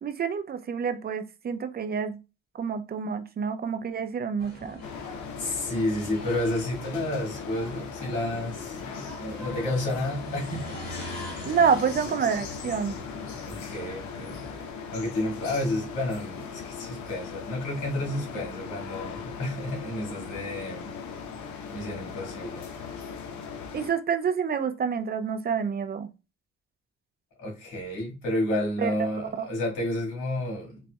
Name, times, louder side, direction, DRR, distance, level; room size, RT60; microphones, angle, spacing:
voice 1, 0.0-2.2 2.5-4.8 11.4-13.0 23.7-26.1 28.8-29.5, right 6 dB, 30° right, 0.5 m, -28 dB
sound 1, 4.4-14.7, equal, 30° left, 1.9 m, -43 dB
sound 2, 4.8-23.9, left 6 dB, 70° left, 0.8 m, -39 dB
voice 2, 5.4-11.2 13.4-14.5 14.9-20.9 21.7-22.7 27.4-30.8, left 1 dB, 85° left, 1.8 m, -31 dB
4.1 x 2.6 x 2.3 m
cardioid pair, 90°, 30 cm